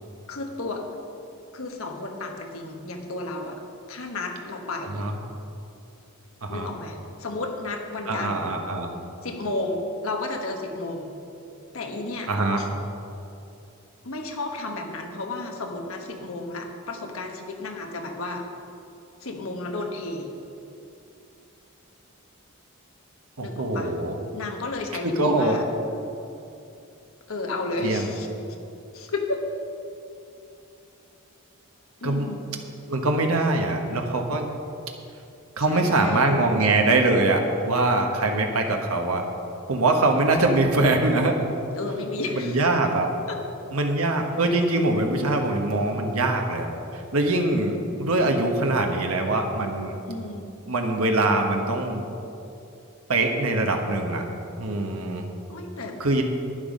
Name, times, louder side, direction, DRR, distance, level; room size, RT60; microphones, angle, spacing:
voice 1, 0.3-0.9 1.5-3.6 3.9-5.0 6.5-8.5 9.2-11.1 11.7-12.3 12.6-12.7 14.0-18.5 19.2-20.3 23.4-23.9 24.3-25.6 27.3-28.3 28.9-29.5 32.0-32.4 35.7-36.3 41.8-42.6 43.3-43.4 50.1-50.5 55.5-56.0, left 2 dB, 75° left, 3 dB, 1.3 m, -32 dB
voice 2, 8.1-8.9 12.3-12.6 23.4-24.2 25.0-25.6 27.8-28.0 32.0-32.3 32.9-34.5 35.6-39.2 39.7-41.3 42.4-43.1 43.7-46.7 47.1-50.0 50.7-52.0 53.1-54.2 54.6-55.3 56.0-56.2, right 2 dB, 85° right, 3 dB, 1.2 m, -23 dB
11.0 x 10.0 x 5.3 m, 2.7 s
head